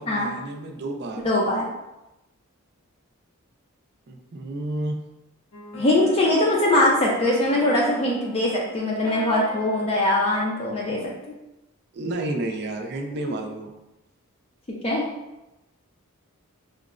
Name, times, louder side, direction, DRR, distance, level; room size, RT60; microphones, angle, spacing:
voice 1, 0.0-1.2 4.1-5.0 11.9-13.7, right 1 dB, 50° right, 3 dB, 0.4 m, -31 dB
voice 2, 1.2-1.7 5.7-11.3 14.8-15.0, left 1 dB, 30° left, -3 dB, 0.4 m, -22 dB
sound 1, 5.5-11.2, left 2 dB, 70° left, 0.6 m, -39 dB
4.5 x 2.0 x 2.4 m, 0.95 s
head